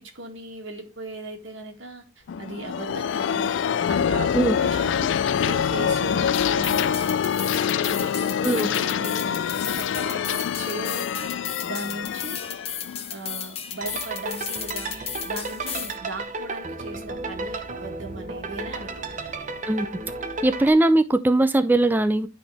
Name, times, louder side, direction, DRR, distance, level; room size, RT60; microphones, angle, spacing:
voice 1, 0.2-2.0 2.4-3.5 3.9-6.9 7.8-9.4 9.7-11.3 11.6-12.4 13.1-15.0 15.2-19.7, right 2 dB, 85° right, 2.0 m, -37 dB
sound 1, 2.3-13.8, left 8 dB, 75° left, 0.3 m, -25 dB
sound 2, 6.3-16.0, left 8 dB, 30° left, 0.9 m, -35 dB
sound 3, 13.8-20.7, right 3 dB, 40° right, 0.8 m, -33 dB
voice 2, 20.4-22.3, right 1 dB, 10° right, 0.3 m, -20 dB
11.0 x 3.9 x 3.4 m
head